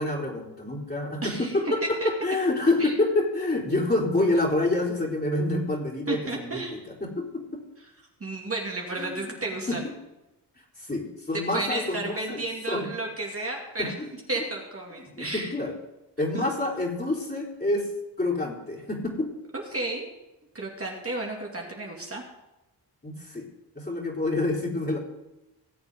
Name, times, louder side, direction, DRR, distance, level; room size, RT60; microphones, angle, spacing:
voice 1, 0.0-1.8 2.0-7.6 9.0-9.4 9.7-9.8 10.8-12.9 13.8-13.9 15.2-15.7 16.2-17.9 18.2-19.3 23.0-23.5 23.8-25.0, left 2 dB, 20° left, -3 dB, 3.6 m, -27 dB
voice 2, 1.2-1.6 2.0-2.1 2.8-2.9 6.1-6.7 8.2-9.9 11.3-13.9 14.3-15.5 16.3-16.5 19.7-20.1 20.5-22.2, right 2 dB, 30° right, -1 dB, 2.3 m, -32 dB
19.0 x 7.9 x 3.6 m, 0.96 s
cardioid pair, 90°, 43 cm